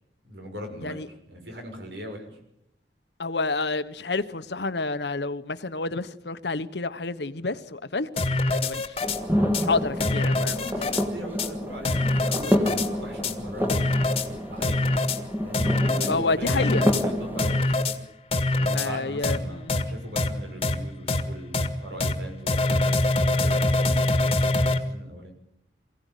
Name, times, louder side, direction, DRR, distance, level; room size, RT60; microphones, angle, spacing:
voice 1, 0.2-2.4 10.2-14.8 15.4-17.9 18.5-23.0 23.3-25.3, equal, 80° right, 6.4 m, -40 dB
voice 2, 3.2-8.1 8.5-9.0 9.6-11.0 16.1-16.9 18.7-19.8, left 3 dB, 75° left, 1.2 m, -29 dB
sound 1, 8.2-9.2 9.5-9.6 10.0-11.0 11.4-11.5 11.8-12.9 13.2-13.3 13.7-14.3 14.6-15.2 15.5-16.1 16.5-17.0 17.4-17.9 18.3-18.9 19.2-19.4 19.7-19.8 20.2-20.3 20.6-20.7 21.1-21.2 21.5-21.7 22.0-22.1 22.5-24.8, left 2 dB, 35° left, 1.8 m, -24 dB
sound 2, 9.0-17.6, equal, 10° right, 2.1 m, -28 dB
24.0 x 16.5 x 9.3 m
head